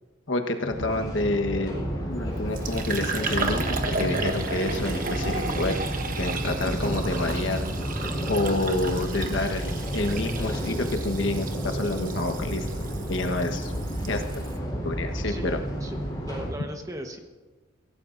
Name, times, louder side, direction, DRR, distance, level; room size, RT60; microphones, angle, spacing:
voice 1, 0.3-1.7 2.1-5.7 6.2-7.6 8.3-12.7 13.1-13.7 14.1-14.2 14.8-15.6, left 2 dB, 70° left, 5 dB, 1.3 m, -28 dB
sound 1, 0.7-16.5, equal, 20° left, 4.0 m, -31 dB
Fill (with liquid), 2.1-14.6, right 3 dB, 45° right, 1.1 m, -34 dB
voice 2, 15.3-17.2, right 1 dB, 15° right, 4 dB, 1.2 m, -38 dB
24.0 x 16.5 x 2.6 m, 1.3 s
head